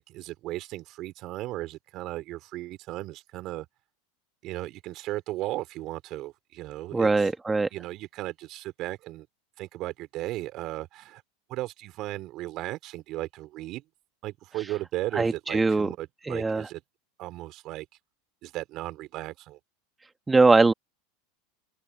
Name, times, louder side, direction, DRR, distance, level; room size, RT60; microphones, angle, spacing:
voice 1, 0.0-3.7 4.4-7.3 7.7-9.3 9.6-11.2 11.5-13.8 14.2-16.8 17.2-17.9 18.4-19.6, right 17 dB, 50° right, 3.5 m, -36 dB
voice 2, 6.9-7.7 15.1-15.9 16.2-16.7 20.3-20.7, right 3 dB, 15° right, 1.5 m, -21 dB
open air
hypercardioid pair, 90°, 0 cm